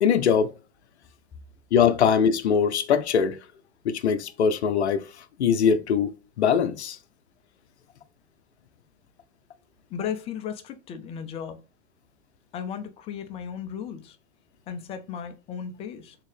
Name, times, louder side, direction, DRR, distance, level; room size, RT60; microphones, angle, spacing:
voice 1, 0.0-0.5 1.7-3.4 3.8-5.0 5.4-6.1 6.4-7.0, left 7 dB, 85° left, 0.6 m, -21 dB
voice 2, 9.9-11.6 12.5-14.2 14.7-16.2, left 8 dB, 20° left, 0.4 m, -35 dB
3.7 x 2.7 x 3.2 m
hypercardioid pair, 125°, 32 cm